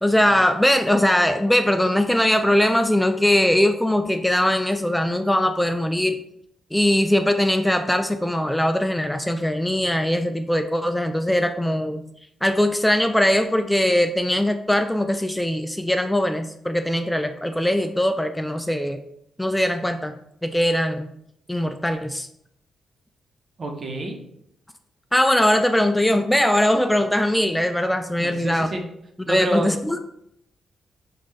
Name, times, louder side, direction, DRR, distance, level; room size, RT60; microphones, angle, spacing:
voice 1, 0.0-6.2 6.7-12.0 12.4-19.0 19.4-20.1 20.4-21.1 21.5-22.3 25.1-28.7 29.3-30.0, left 1 dB, 5° left, 7 dB, 0.3 m, -21 dB
voice 2, 23.6-24.2 28.2-28.8 29.3-29.7, right 1 dB, 50° right, 2 dB, 0.9 m, -27 dB
5.5 x 2.5 x 3.2 m, 0.75 s
supercardioid pair, 55°, 0 cm